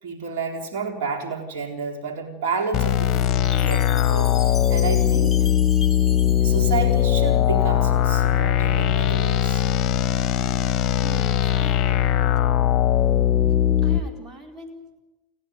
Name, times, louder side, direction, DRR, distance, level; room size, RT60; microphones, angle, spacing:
voice 1, 0.0-5.5 6.4-9.6, right 5 dB, 50° right, 3 dB, 4.0 m, -30 dB
sound 1, 2.7-14.0, left 11 dB, 30° left, 1.0 m, -20 dB
Chime, 3.4-7.7, left 5 dB, 10° left, 1.8 m, -39 dB
voice 2, 10.9-12.8 13.8-15.0, right 1 dB, 25° right, 3 dB, 4.3 m, -43 dB
29.0 x 11.0 x 9.5 m, 1.1 s
figure-of-eight pair, 90°, 0 cm